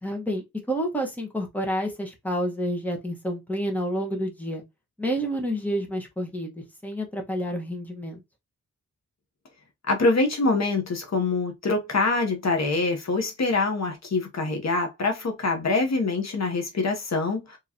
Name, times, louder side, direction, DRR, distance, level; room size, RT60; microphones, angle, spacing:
voice 1, 0.0-4.6 5.0-8.2, equal, 5° left, 1.2 m, -29 dB
voice 2, 9.9-17.6, left 3 dB, 55° left, 0.9 m, -25 dB
4.7 x 3.0 x 2.8 m
wide cardioid pair, 140°, 32 cm